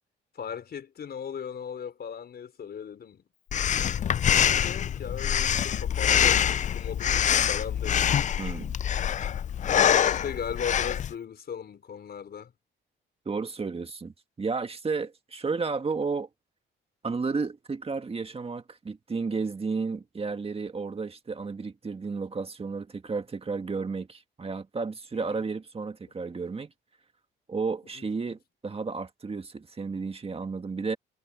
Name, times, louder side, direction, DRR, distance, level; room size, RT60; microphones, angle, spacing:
voice 1, 0.3-3.2 3.5-3.9 4.4-8.1 9.7-12.5 25.1-25.4 27.9-28.3, left 7 dB, 55° left, 5.0 m, -38 dB
Breathing, 3.5-11.1, left 9 dB, 40° left, 0.4 m, -25 dB
voice 2, 8.4-8.8 13.3-16.3 17.0-26.7 27.5-31.0, right 4 dB, 30° right, 1.8 m, -32 dB
cardioid pair, 90°, 20 cm